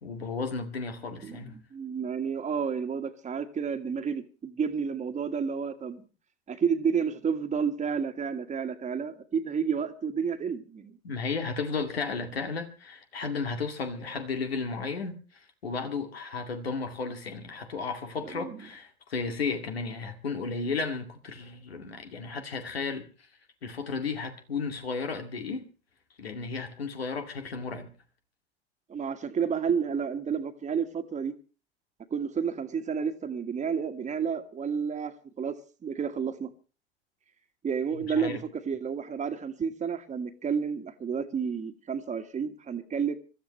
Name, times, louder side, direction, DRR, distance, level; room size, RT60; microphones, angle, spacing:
voice 1, 0.0-1.6 11.0-15.2 15.6-23.1 23.6-25.7 26.2-27.9 38.1-38.4, left 4 dB, 80° left, 2.4 m, -34 dB
voice 2, 1.2-6.1 6.5-11.0 18.2-18.6 28.9-31.3 32.1-36.5 37.6-43.1, right 6 dB, 25° right, 1.7 m, -31 dB
25.5 x 13.5 x 3.2 m
figure-of-eight pair, 75°, 30 cm